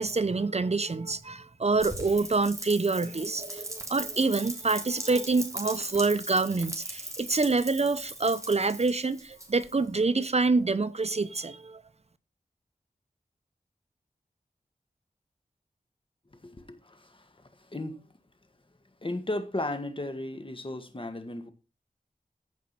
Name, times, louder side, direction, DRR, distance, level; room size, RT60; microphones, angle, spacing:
voice 1, 0.0-11.8, right 3 dB, 45° right, 0.8 m, -26 dB
Rain, 1.8-9.9, right 1 dB, 20° right, 3.3 m, -39 dB
voice 2, 16.3-18.0 19.0-21.5, left 1 dB, 35° left, 1.9 m, -35 dB
15.0 x 5.3 x 5.9 m
wide cardioid pair, 75°, 15 cm